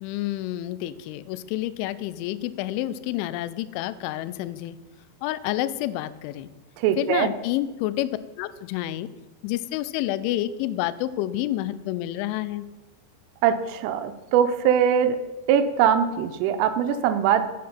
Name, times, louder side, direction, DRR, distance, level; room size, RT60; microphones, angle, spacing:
voice 1, 0.0-4.8 5.2-6.5 7.0-9.1 9.4-12.7, left 14 dB, 85° left, 15 dB, 2.7 m, -29 dB
voice 2, 6.8-7.3 13.4-15.2 15.5-17.5, right 8 dB, 85° right, 9 dB, 3.1 m, -21 dB
9.5 x 8.6 x 5.7 m, 1.1 s
omnidirectional pair, 6.0 m